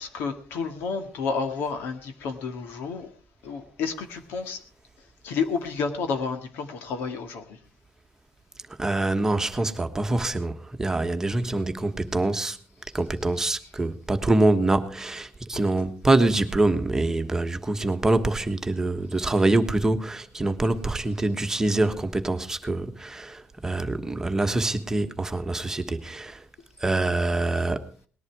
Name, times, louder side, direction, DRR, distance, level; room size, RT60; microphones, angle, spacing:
voice 1, 0.0-3.1 3.4-4.6 5.2-7.4, left 5 dB, 85° left, 2.1 m, -30 dB
voice 2, 8.8-12.6 12.9-26.4 26.8-27.9, right 2 dB, 15° right, 1.3 m, -25 dB
19.5 x 11.0 x 4.7 m
cardioid pair, 125°, 4 cm